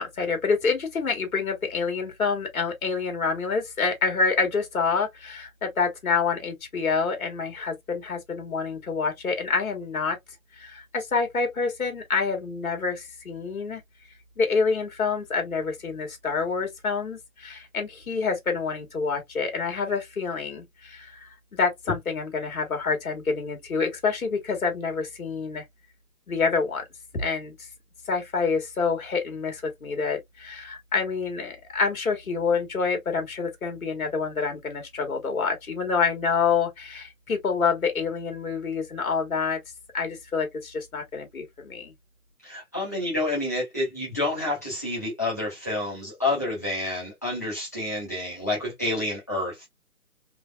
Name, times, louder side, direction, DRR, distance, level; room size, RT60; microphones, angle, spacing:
voice 1, 0.0-10.2 10.6-13.8 14.4-25.6 26.3-26.8 27.1-27.5 28.1-39.6 39.9-41.9, left 5 dB, 70° left, 1.5 m, -27 dB
voice 2, 42.4-49.7, left 2 dB, 10° left, 0.9 m, -29 dB
3.4 x 3.3 x 2.3 m
hypercardioid pair, 180°, 43 cm